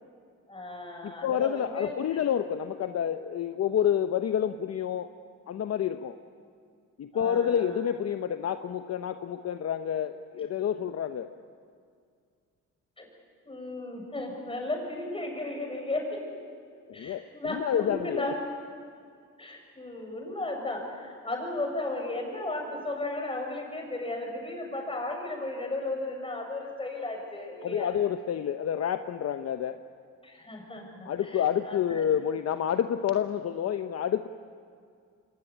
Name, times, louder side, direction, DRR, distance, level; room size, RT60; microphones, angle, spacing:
voice 1, 0.5-2.2 7.1-7.8 13.0-13.1 13.4-16.3 16.9-18.4 19.4-27.9 30.2-32.0, left 2 dB, 20° left, 1 dB, 6.8 m, -35 dB
voice 2, 1.0-5.1 5.5-6.1 7.0-11.3 16.9-18.3 27.6-29.8 31.0-34.3, left 9 dB, 55° left, 8 dB, 0.9 m, -29 dB
25.0 x 17.5 x 10.0 m, 2.2 s
cardioid pair, 90°, 30 cm